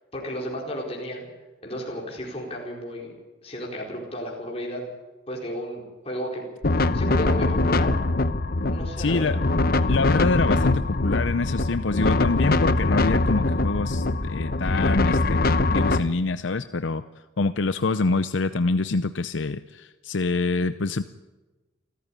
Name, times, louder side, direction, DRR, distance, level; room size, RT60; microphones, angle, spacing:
voice 1, 0.1-1.2 1.6-3.1 3.4-4.8 5.3-6.4 6.8-7.9 8.7-9.4, equal, 30° left, -1 dB, 4.5 m, -33 dB
sound 1, 6.6-16.0, left 2 dB, 50° left, 0.9 m, -22 dB
voice 2, 9.0-9.4 9.9-17.0 17.4-21.0, left 3 dB, 80° left, 12 dB, 0.7 m, -26 dB
28.0 x 14.0 x 9.9 m, 1.2 s
head